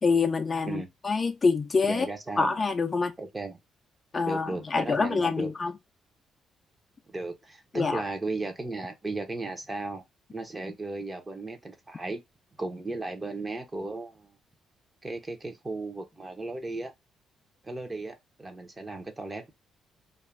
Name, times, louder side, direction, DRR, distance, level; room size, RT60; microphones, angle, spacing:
voice 1, 0.0-2.1 2.4-3.1 4.1-5.7 7.7-8.0, left 4 dB, 35° left, 0.4 m, -26 dB
voice 2, 1.9-2.5 3.2-3.6 4.2-5.5 7.1-10.0 10.3-12.2 12.6-14.4 15.0-16.9 17.6-19.5, right 2 dB, 20° right, 0.7 m, -35 dB
2.4 x 2.2 x 3.1 m
cardioid pair, 90°, 0 cm